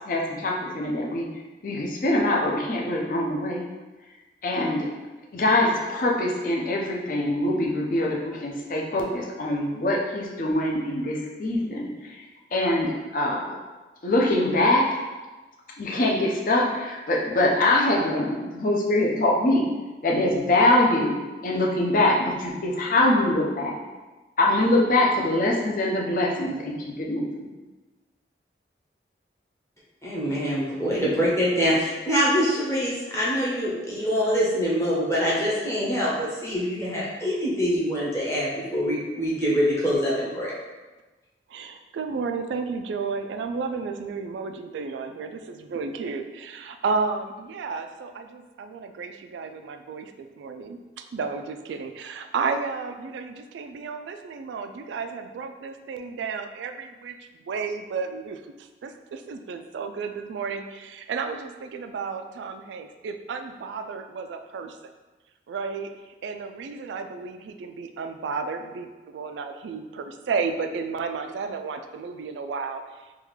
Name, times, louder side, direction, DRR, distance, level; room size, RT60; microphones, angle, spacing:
voice 1, 0.1-1.3 1.6-3.7 4.4-4.9 5.3-11.9 12.5-13.6 14.0-15.0 15.8-19.7 20.0-21.2 21.4-23.8 24.4-27.5, left 1 dB, 50° left, -1 dB, 0.5 m, -23 dB
voice 2, 30.0-40.5, equal, 15° left, -6 dB, 0.7 m, -24 dB
voice 3, 41.5-57.2 57.5-64.8 65.5-65.9 66.2-72.8, right 5 dB, 90° right, 7 dB, 0.3 m, -32 dB
3.5 x 2.3 x 3.1 m, 1.2 s
head